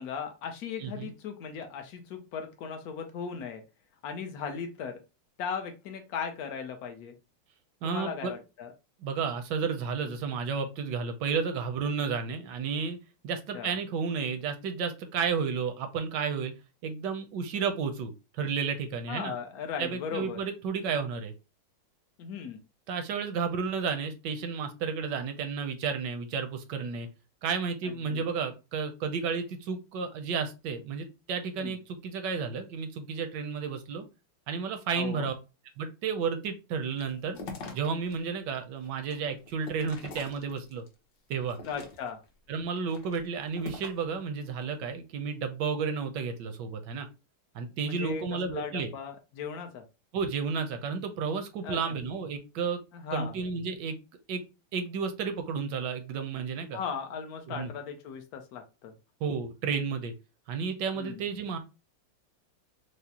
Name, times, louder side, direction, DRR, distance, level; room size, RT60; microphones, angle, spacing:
voice 1, 0.0-3.6 4.0-5.0 5.4-7.1 7.8-8.7 13.5-13.7 19.1-20.4 22.2-22.6 28.1-28.3 31.6-31.8 34.9-35.3 41.6-42.2 47.8-48.2 48.5-49.8 51.6-51.8 52.9-53.3 56.7-58.9 60.9-61.2, left 6 dB, 80° left, 5 dB, 0.8 m, -37 dB
voice 2, 0.8-1.1 7.8-8.3 9.0-13.0 13.2-16.5 16.8-19.3 19.8-21.3 22.9-27.1 27.4-34.0 34.5-35.3 35.8-37.4 37.7-40.8 41.3-41.6 42.5-47.1 47.5-48.9 50.1-52.8 53.1-54.0 54.3-54.4 54.7-56.8 57.5-57.7 59.2-60.1 60.5-61.6, right 5 dB, 75° right, 7 dB, 1.0 m, -32 dB
sound 1, 36.9-38.2 38.6-40.9 41.4-42.3 42.8-44.1, left 3 dB, 60° left, 1.2 m, -44 dB
4.8 x 2.0 x 2.8 m, 0.28 s
omnidirectional pair, 2.3 m